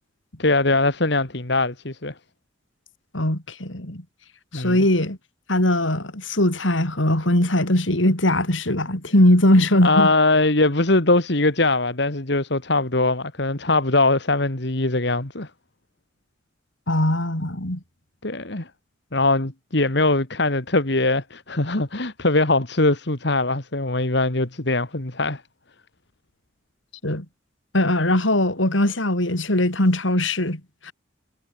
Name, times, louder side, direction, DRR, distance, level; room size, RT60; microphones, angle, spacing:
voice 1, 0.4-2.1 4.5-4.9 9.8-15.5 18.2-18.7 19.1-25.4, left 2 dB, 60° left, 2.4 m, -21 dB
voice 2, 3.1-4.0 4.5-5.2 5.5-10.1 16.9-17.8 27.0-27.2 27.7-30.9, left 1 dB, 80° left, 4.8 m, -20 dB
head